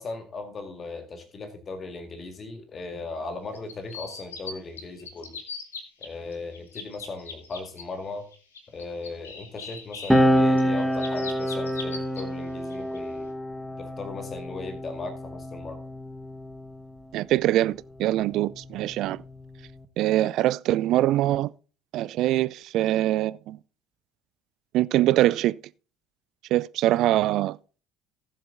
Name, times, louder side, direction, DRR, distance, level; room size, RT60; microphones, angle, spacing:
voice 1, 0.0-5.4 6.0-8.3 8.7-13.3 13.8-15.8, left 3 dB, 35° left, 2.0 m, -38 dB
sound 1, 3.5-4.5 4.8-6.1 6.3-7.8 8.3-12.2 12.7-13.0, left 5 dB, 80° left, 2.0 m, -39 dB
sound 2, 10.1-17.0 18.0-19.8, equal, ahead, 1.4 m, -27 dB
voice 2, 17.1-19.2 20.0-21.5 21.9-23.6 24.7-25.5 26.5-27.6, right 14 dB, 55° right, 0.5 m, -23 dB
18.0 x 7.7 x 2.7 m
figure-of-eight pair, 55°, 0 cm